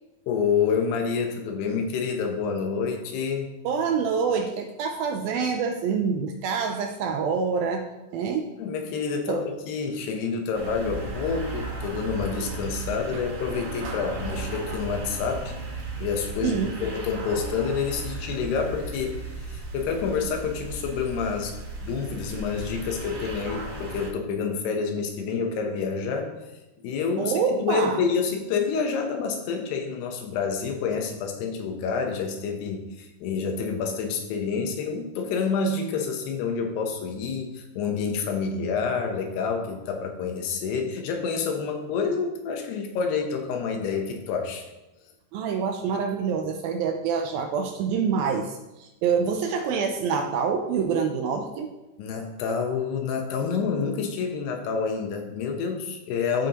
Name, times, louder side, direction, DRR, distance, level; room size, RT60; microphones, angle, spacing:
voice 1, 0.3-3.5 8.6-15.5 16.0-19.2 19.5-21.5 21.8-26.3 26.8-44.7 52.0-56.5, left 5 dB, 80° left, 4 dB, 3.0 m, -28 dB
voice 2, 3.6-7.9 8.1-8.5 9.3-9.4 13.9-14.0 16.4-16.8 27.2-28.0 45.3-51.7, right 6 dB, 80° right, 4 dB, 2.2 m, -26 dB
sound 1, 10.5-24.1, right 2 dB, 65° right, 3.3 m, -35 dB
15.0 x 5.4 x 2.9 m, 1.0 s
omnidirectional pair, 4.6 m